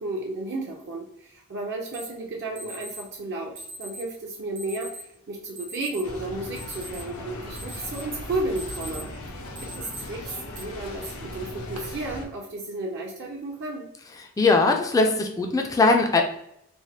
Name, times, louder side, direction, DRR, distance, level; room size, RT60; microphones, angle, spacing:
voice 1, 0.0-9.1 9.6-13.9, right 2 dB, 50° right, -1 dB, 0.4 m, -33 dB
Alarm, 1.9-2.0 2.6-3.0 3.6-4.0 4.6-5.0 5.6-6.0 6.4-7.2 7.6-8.1 8.4-9.1 9.6-10.0 10.5-10.6 11.4-11.8, right 2 dB, 80° right, 0.8 m, -40 dB
sound 1, 6.0-12.3, left 1 dB, 80° left, 0.6 m, -38 dB
voice 2, 14.4-16.2, left 3 dB, 15° left, 3 dB, 0.3 m, -20 dB
3.2 x 2.1 x 2.7 m, 0.77 s
head